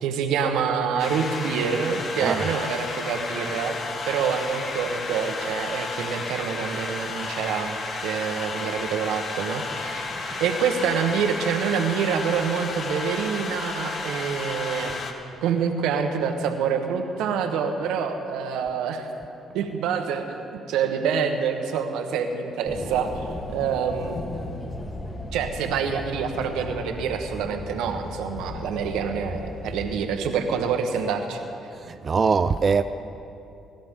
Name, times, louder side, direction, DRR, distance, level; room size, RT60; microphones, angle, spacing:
voice 1, 0.0-3.8 4.0-7.8 8.0-15.0 15.4-19.1 19.5-20.4 20.7-23.3 23.5-24.2 25.3-31.4, right 6 dB, 85° right, 1.2 m, -26 dB
sound 1, 1.0-15.1, left 3 dB, 55° left, 1.5 m, -32 dB
sound 2, 22.6-30.1, left 2 dB, 40° left, 1.7 m, -36 dB
voice 2, 31.7-32.8, right 5 dB, 40° right, 0.4 m, -22 dB
22.5 x 11.5 x 3.7 m
supercardioid pair, 70°, 0 cm